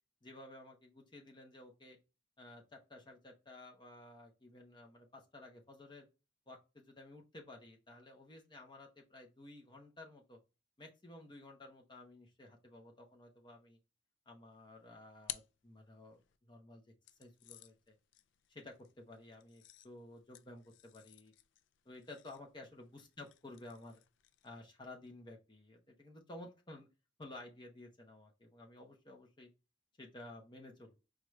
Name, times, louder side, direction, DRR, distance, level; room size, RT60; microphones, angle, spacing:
voice 1, 0.2-2.0 2.4-6.1 6.5-10.4 10.8-13.8 14.3-16.8 17.2-17.9 18.5-21.3 21.8-24.0 24.4-26.9 27.2-29.5 30.0-31.0, left 2 dB, 25° left, 1 dB, 0.9 m, -54 dB
sound 1, 14.6-16.4 17.1-24.7, left 15 dB, 90° left, 0.3 m, -54 dB
4.9 x 2.4 x 3.1 m, 0.29 s
head